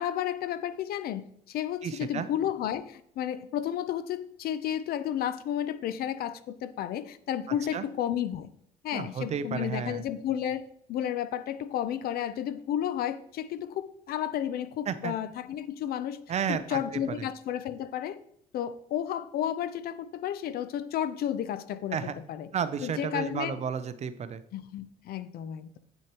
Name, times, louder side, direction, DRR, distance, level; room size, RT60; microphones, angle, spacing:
voice 1, 0.0-8.5 8.8-10.6 10.9-16.2 16.5-18.2 18.5-22.5 22.8-23.6 24.5-25.8, left 10 dB, 65° left, 14 dB, 0.5 m, -32 dB
voice 2, 1.8-2.3 7.7-7.8 8.9-10.0 14.9-15.1 16.3-17.2 21.9-22.2 22.5-24.4, right 7 dB, 40° right, 13 dB, 0.5 m, -32 dB
8.1 x 6.3 x 2.9 m, 0.70 s
cardioid pair, 110°, 17 cm